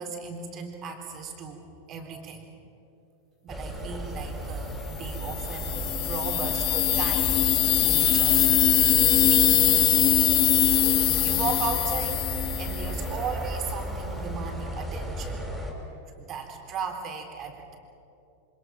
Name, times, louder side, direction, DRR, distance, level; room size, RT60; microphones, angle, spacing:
voice 1, 0.0-2.5 3.4-7.4 7.8-9.7 11.2-12.3 12.6-15.4 16.2-17.7, right 5 dB, 30° right, 3 dB, 4.1 m, -36 dB
sound 1, 3.5-15.7, equal, 5° right, 5.3 m, -34 dB
sound 2, 5.2-13.1, left 13 dB, 40° left, 2.2 m, -22 dB
27.5 x 26.0 x 6.0 m, 2.7 s
figure-of-eight pair, 90°, 0 cm